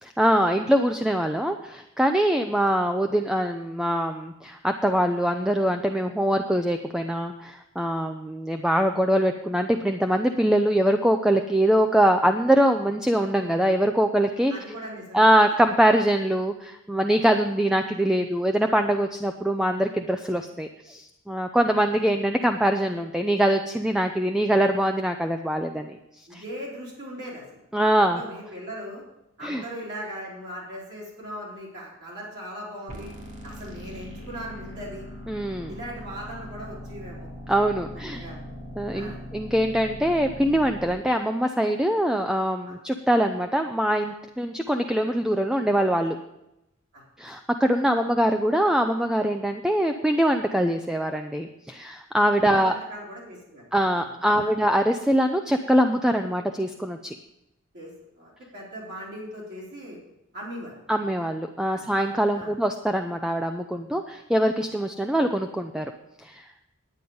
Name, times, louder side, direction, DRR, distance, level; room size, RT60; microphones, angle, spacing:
voice 1, 0.0-14.5 15.1-26.0 26.3-26.4 27.7-28.2 29.4-29.6 35.3-35.7 37.5-38.2 38.8-46.2 47.2-52.8 53.7-57.1 60.9-65.9 66.2-66.4, equal, 5° right, 5 dB, 0.5 m, -23 dB
voice 2, 14.5-15.3 17.1-17.2 21.6-21.7 26.3-27.9 28.1-29.0 29.4-33.1 33.4-35.1 35.7-37.3 38.1-38.5 38.9-39.2 42.6-42.7 46.9-47.0 52.4-53.6 53.9-54.6 57.7-57.9 58.2-60.0 60.3-60.7 61.7-61.8 62.4-62.5, equal, 55° right, -6 dB, 3.4 m, -39 dB
sound 1, 32.9-40.9, equal, 40° right, 2.8 m, -40 dB
10.5 x 9.3 x 5.4 m, 0.87 s
head